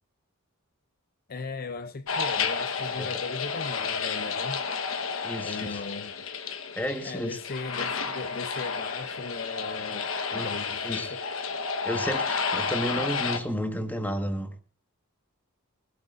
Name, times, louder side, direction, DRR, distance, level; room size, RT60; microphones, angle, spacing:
voice 1, 1.3-4.6 5.4-6.1 7.0-11.2, left 4 dB, 45° left, 0.6 m, -37 dB
sound 1, 2.1-13.4, left 5 dB, 70° left, 1.2 m, -31 dB
voice 2, 5.2-5.8 6.7-7.4 10.3-10.5 10.8-11.1 11.8-14.5, equal, 10° left, 1.5 m, -32 dB
20.0 x 16.5 x 2.6 m
head